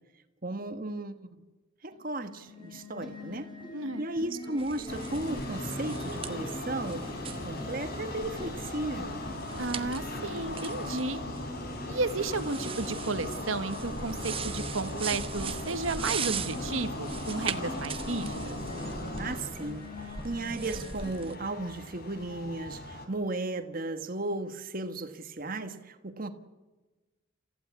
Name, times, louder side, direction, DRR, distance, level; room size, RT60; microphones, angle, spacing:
voice 1, 0.4-1.3 1.8-3.5 4.0-7.1 7.4-9.2 19.2-19.9 20.2-26.3, right 2 dB, 40° right, 8 dB, 1.5 m, -35 dB
sound 1, 1.9-21.2, left 1 dB, 20° left, 5.7 m, -44 dB
voice 2, 3.7-4.1 9.6-11.2 11.9-18.6, right 3 dB, 75° right, 11 dB, 1.4 m, -33 dB
sound 2, 4.6-21.4, right 6 dB, 25° right, 1.0 m, -41 dB
sound 3, 4.9-23.1, left 1 dB, 50° left, 3.6 m, -39 dB
27.5 x 15.5 x 8.3 m, 1.2 s
head